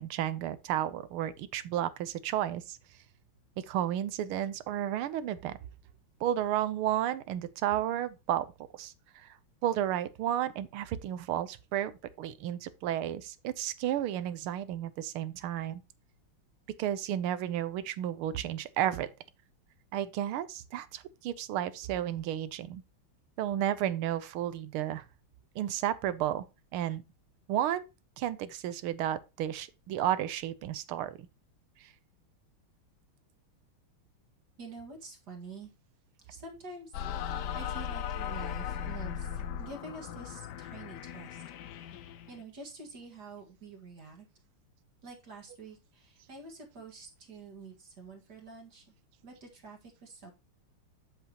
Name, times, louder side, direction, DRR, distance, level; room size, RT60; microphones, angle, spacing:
voice 1, 0.0-2.8 3.7-5.5 6.2-8.5 8.8-9.3 9.6-11.9 12.2-15.8 16.8-19.1 19.9-22.8 23.4-25.0 25.5-26.4 26.7-27.0 27.5-27.9 28.2-31.3 31.8-31.9, right 11 dB, 85° right, 1.6 m, -32 dB
voice 2, 34.6-35.7 36.2-41.4 41.7-44.3 45.0-48.9 49.2-50.3, right 3 dB, 50° right, 2.3 m, -47 dB
sound 1, 36.9-42.4, left 8 dB, 70° left, 1.1 m, -38 dB
7.8 x 7.1 x 2.9 m
omnidirectional pair, 2.3 m